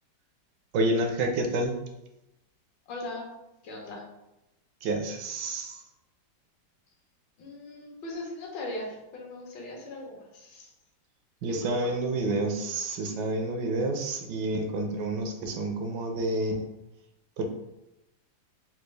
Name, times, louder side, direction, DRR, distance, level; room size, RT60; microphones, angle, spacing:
voice 1, 0.7-1.7 4.8-5.8 11.4-16.6 17.4-17.5, right 2 dB, 75° right, 4 dB, 1.1 m, -29 dB
voice 2, 2.9-3.3 3.6-4.0 7.4-10.7 11.5-11.9, left 1 dB, 75° left, -1 dB, 1.5 m, -39 dB
4.4 x 2.3 x 3.1 m, 0.93 s
omnidirectional pair, 2.0 m